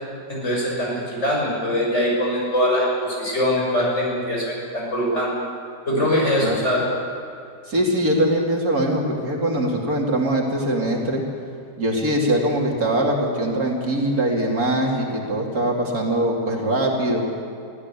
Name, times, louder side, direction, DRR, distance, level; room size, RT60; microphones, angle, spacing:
voice 1, 0.3-5.3 5.9-6.8, equal, 40° left, -3 dB, 6.8 m, -22 dB
voice 2, 7.7-11.2 11.8-17.3, right 1 dB, 55° right, -1 dB, 3.1 m, -22 dB
24.0 x 15.5 x 8.4 m, 2.4 s
omnidirectional pair, 1.9 m